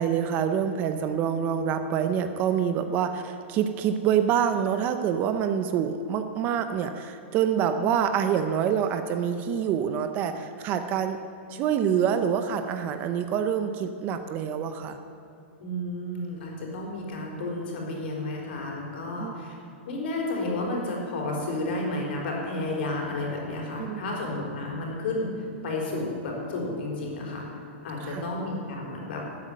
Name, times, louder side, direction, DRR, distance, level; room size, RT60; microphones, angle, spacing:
voice 1, 0.0-11.2 11.5-15.0 19.2-19.3 23.8-24.0 28.0-28.3, right 8 dB, 25° right, 9 dB, 0.6 m, -26 dB
voice 2, 15.6-19.5 19.9-25.3 25.6-27.4 27.8-29.2, left 2 dB, 55° left, -1 dB, 4.2 m, -31 dB
13.0 x 8.1 x 9.2 m, 2.8 s
hypercardioid pair, 160°, 7 cm